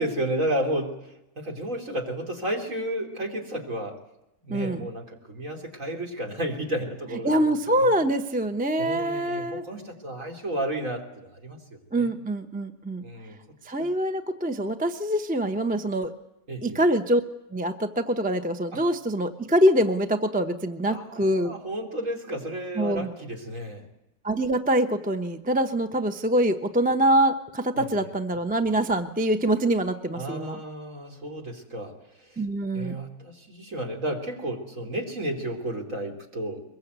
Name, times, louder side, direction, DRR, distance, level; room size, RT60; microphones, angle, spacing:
voice 1, 0.0-4.0 4.4-7.9 8.8-11.6 11.9-12.1 13.0-13.4 13.7-13.9 16.5-16.8 18.7-18.8 20.9-23.8 27.8-27.9 30.1-31.9 32.3-32.4 32.7-36.6, right 1 dB, 60° right, 1 dB, 3.8 m, -32 dB
voice 2, 4.5-4.9 7.2-9.6 11.9-13.0 13.7-16.1 16.6-17.2 17.5-21.5 22.8-23.1 24.2-30.6 32.4-33.0, right 1 dB, 5° right, 8 dB, 0.8 m, -24 dB
23.0 x 21.5 x 8.2 m, 0.88 s
omnidirectional pair, 1.5 m